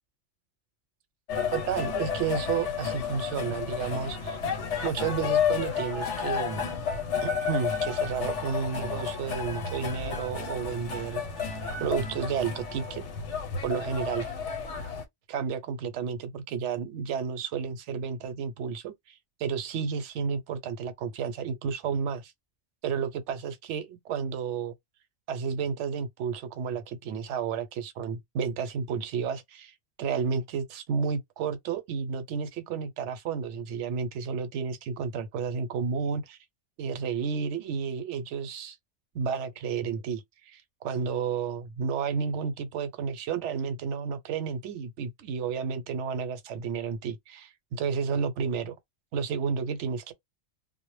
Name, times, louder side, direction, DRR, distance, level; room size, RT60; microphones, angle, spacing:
sound 1, 1.3-15.0, left 6 dB, 90° left, 1.0 m, -31 dB
voice 1, 1.5-4.4 4.8-6.7 7.2-13.0 13.6-14.3 15.3-19.1 19.4-22.3 22.8-24.7 25.3-36.4 36.8-38.8 39.1-48.8 49.1-50.1, right 6 dB, 80° right, 0.9 m, -31 dB
2.0 x 2.0 x 3.0 m
omnidirectional pair, 1.2 m